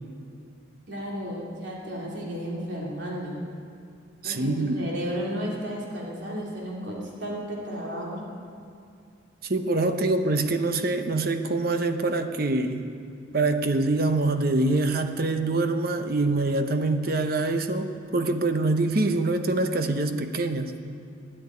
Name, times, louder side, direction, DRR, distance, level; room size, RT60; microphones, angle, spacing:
voice 1, 0.9-3.5 4.2-8.2, equal, 65° right, -3 dB, 2.7 m, -33 dB
voice 2, 4.2-4.8 9.4-12.9 13.3-20.8, right 2 dB, 50° right, 7 dB, 0.9 m, -25 dB
13.0 x 10.0 x 9.8 m, 2.4 s
head